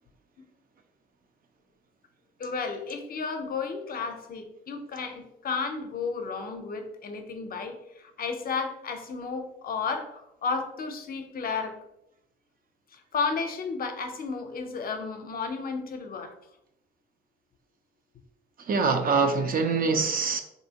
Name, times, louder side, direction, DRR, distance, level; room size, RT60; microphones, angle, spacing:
voice 1, 2.4-11.8 12.9-16.3, left 5 dB, 45° left, 6 dB, 0.6 m, -33 dB
voice 2, 18.7-20.4, right 4 dB, 45° right, 6 dB, 0.4 m, -24 dB
3.3 x 2.6 x 2.8 m, 0.82 s
cardioid pair, 90°, 20 cm